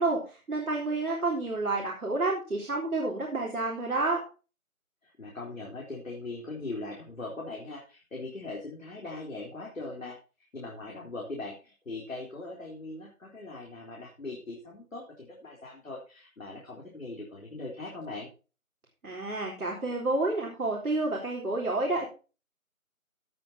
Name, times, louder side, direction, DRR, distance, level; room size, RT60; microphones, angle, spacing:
voice 1, 0.0-4.2 19.0-22.1, right 2 dB, 85° right, -1 dB, 4.1 m, -29 dB
voice 2, 5.0-18.3, left 2 dB, 70° left, -2 dB, 3.9 m, -40 dB
16.5 x 7.9 x 2.9 m, 0.34 s
figure-of-eight pair, 175°, 42 cm